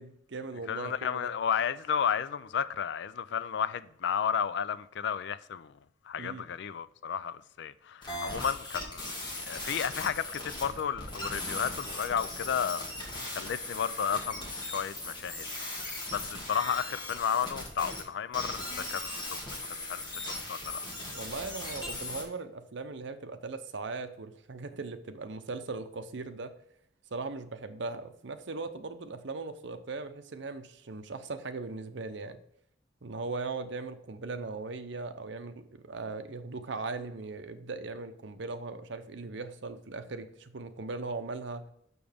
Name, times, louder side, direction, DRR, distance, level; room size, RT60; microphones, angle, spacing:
voice 1, 0.0-1.3 6.2-6.5 21.1-26.5 27.1-32.4 33.0-41.7, right 3 dB, 70° right, 0.7 m, -39 dB
voice 2, 0.7-5.7 6.1-12.9 13.3-15.5 15.7-20.9, left 7 dB, 65° left, 0.4 m, -33 dB
sound 1, 8.0-18.0 18.3-22.2, left 2 dB, 25° left, 2.1 m, -38 dB
6.9 x 6.4 x 3.5 m
head